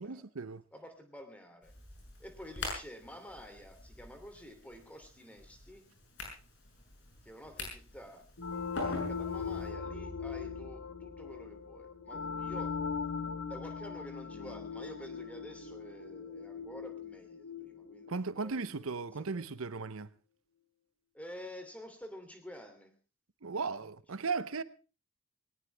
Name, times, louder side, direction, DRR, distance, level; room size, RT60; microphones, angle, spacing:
voice 1, 0.0-0.6 18.1-20.1 23.4-24.6, right 4 dB, 85° right, 0.8 m, -36 dB
voice 2, 0.7-1.7 2.2-5.9 7.2-8.3 8.9-12.7 13.5-19.0 19.3-19.4 21.1-22.9 23.5-24.3, equal, 5° left, 2.8 m, -50 dB
sound 1, 1.6-9.7, left 2 dB, 55° left, 6.7 m, -45 dB
sound 2, 8.4-18.8, left 5 dB, 75° left, 1.2 m, -40 dB
19.5 x 18.0 x 3.4 m
head